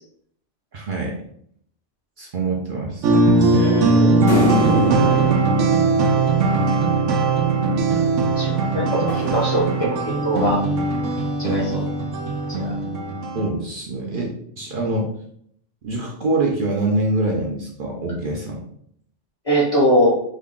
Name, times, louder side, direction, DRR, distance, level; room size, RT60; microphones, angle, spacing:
voice 1, 0.7-1.2 2.2-3.1 4.9-5.0 13.3-15.1 15.8-18.7, right 2 dB, 55° right, -1 dB, 0.6 m, -25 dB
sound 1, 3.0-13.5, right 3 dB, 80° right, 0.9 m, -19 dB
voice 2, 3.5-4.2 8.4-10.6 11.4-11.9 12.5-12.7 19.5-20.2, equal, 35° left, -4 dB, 0.6 m, -22 dB
sound 2, 4.3-7.0 8.4-10.5, equal, 80° left, 1.2 m, -27 dB
3.6 x 2.2 x 3.6 m, 0.67 s
omnidirectional pair, 1.2 m